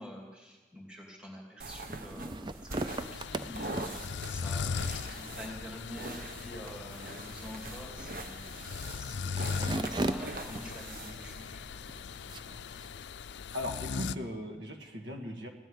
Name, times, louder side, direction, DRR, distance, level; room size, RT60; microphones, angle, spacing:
voice 1, 0.0-3.9 4.2-11.6, left 1 dB, 5° right, -1 dB, 2.7 m, -47 dB
sound 1, 1.6-11.5, right 2 dB, 50° right, 1.1 m, -44 dB
sound 2, 1.7-12.9, right 2 dB, 25° right, 0.5 m, -41 dB
sound 3, 2.9-14.2, left 6 dB, 85° left, 0.4 m, -39 dB
voice 2, 13.5-15.5, left 1 dB, 85° right, 3 dB, 1.9 m, -38 dB
16.0 x 8.2 x 10.0 m, 1.3 s
head